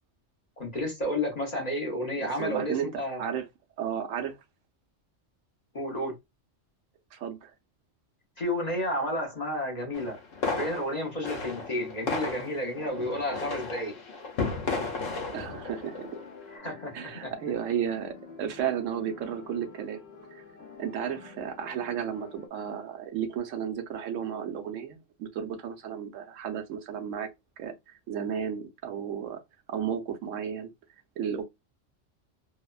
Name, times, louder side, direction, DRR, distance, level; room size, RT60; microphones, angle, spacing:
voice 1, 0.6-3.2 5.7-6.2 8.4-10.2 10.4-14.0 16.5-17.3, left 1 dB, 40° left, 0.7 m, -31 dB
voice 2, 2.2-3.5 3.8-4.4 7.1-7.5 15.3-16.2 16.9-20.0 20.3-20.4 20.8-27.3 27.6-27.7 28.1-29.4 29.7-30.7 31.2-31.4, right 8 dB, 85° right, 1.0 m, -33 dB
sound 1, 9.9-16.3, left 3 dB, 85° left, 1.2 m, -34 dB
sound 2, 14.4-22.5, left 4 dB, 60° left, 1.1 m, -49 dB
2.8 x 2.1 x 2.3 m
omnidirectional pair, 1.3 m